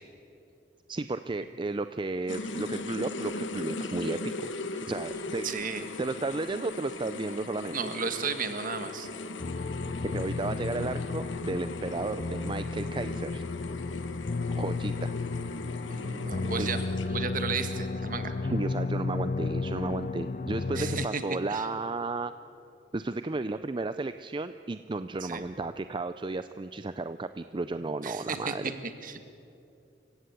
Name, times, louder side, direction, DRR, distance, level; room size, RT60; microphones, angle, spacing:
voice 1, 0.9-4.5 4.9-5.7 6.0-7.8 10.0-13.4 14.5-15.1 16.6-16.7 18.4-22.3 22.9-28.7, right 3 dB, 25° right, 11 dB, 0.5 m, -33 dB
sound 1, 2.3-17.4, left 2 dB, 80° left, 1.3 m, -39 dB
voice 2, 5.4-5.9 7.7-9.1 15.9-16.8 17.1-18.3 20.7-21.2 21.5-21.7 25.2-25.4 28.0-28.5 28.8-29.2, right 5 dB, 45° right, 8 dB, 1.6 m, -34 dB
sound 2, 9.4-21.1, left 3 dB, 45° left, 0.5 m, -33 dB
28.0 x 16.0 x 8.2 m, 2.8 s
head